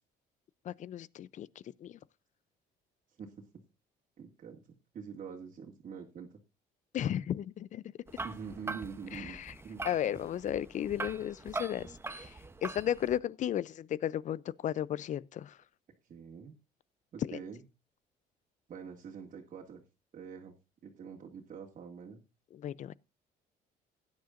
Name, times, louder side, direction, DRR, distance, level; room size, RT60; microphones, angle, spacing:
voice 1, 0.6-2.0 6.9-7.8 9.1-9.5 9.8-15.6 17.2-17.4 22.5-22.9, left 11 dB, 45° left, 0.5 m, -35 dB
voice 2, 4.2-6.4 8.2-9.4 9.6-9.8 16.1-16.6 17.1-17.6 18.7-19.8 20.1-20.6 20.8-22.2, right 6 dB, 50° right, 2.1 m, -45 dB
sound 1, 8.1-13.2, right 3 dB, 15° right, 0.8 m, -42 dB
16.0 x 10.5 x 2.5 m
cardioid pair, 110°, 17 cm